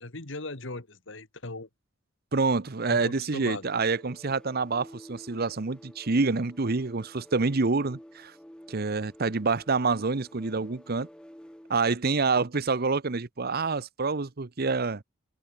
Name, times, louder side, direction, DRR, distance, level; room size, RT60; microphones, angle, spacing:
voice 1, 0.0-1.7 2.9-3.8, left 2 dB, 65° left, 2.2 m, -38 dB
voice 2, 2.3-8.3 8.7-11.1 11.7-15.0, right 4 dB, 50° right, 0.9 m, -27 dB
sound 1, 3.5-11.9, equal, 5° left, 2.4 m, -51 dB
head